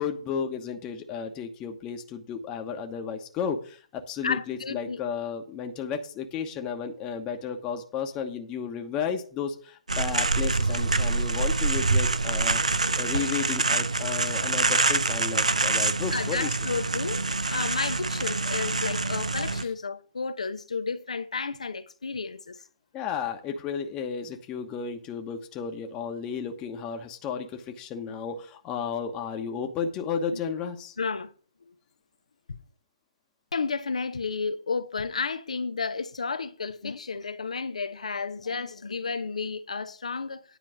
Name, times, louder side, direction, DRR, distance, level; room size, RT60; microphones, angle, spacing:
voice 1, 0.0-12.6 12.9-16.6 19.6-19.7 22.9-31.0, left 6 dB, 25° left, 1.1 m, -33 dB
voice 2, 4.2-5.0 16.1-22.6 30.3-30.4 31.0-31.3 33.5-40.4, left 4 dB, 75° left, 0.9 m, -32 dB
sound 1, 9.9-19.6, right 3 dB, 85° right, 0.8 m, -26 dB
10.0 x 4.5 x 7.5 m
figure-of-eight pair, 130°, 4 cm